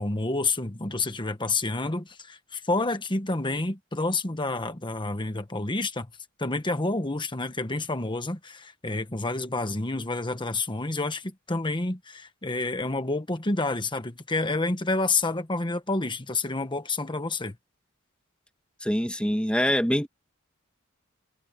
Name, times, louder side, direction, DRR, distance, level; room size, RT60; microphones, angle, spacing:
voice 1, 0.0-6.1 6.4-17.6, left 2 dB, 25° left, 1.4 m, -29 dB
voice 2, 18.8-20.1, equal, 5° left, 2.2 m, -24 dB
head